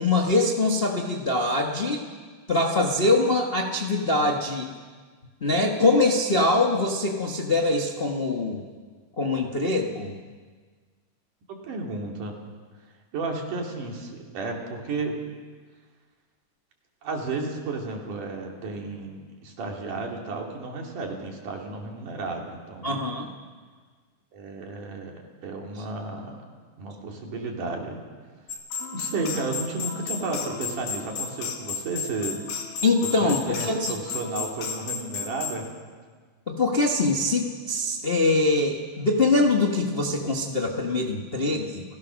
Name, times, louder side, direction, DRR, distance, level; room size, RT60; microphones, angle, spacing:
voice 1, 0.0-2.1 2.5-4.7 5.4-8.6 9.2-10.1 22.8-23.3 32.8-33.9 36.5-41.8, left 2 dB, 65° left, 1 dB, 0.5 m, -23 dB
voice 2, 11.5-12.4 13.1-15.2 17.0-23.1 24.3-26.4 26.8-28.0 28.9-32.4 33.2-35.7, right 3 dB, 70° right, 1 dB, 4.2 m, -33 dB
sound 1, 28.5-35.6, left 6 dB, 85° left, 3.5 m, -33 dB
29.5 x 16.5 x 6.4 m, 1.5 s
omnidirectional pair, 3.7 m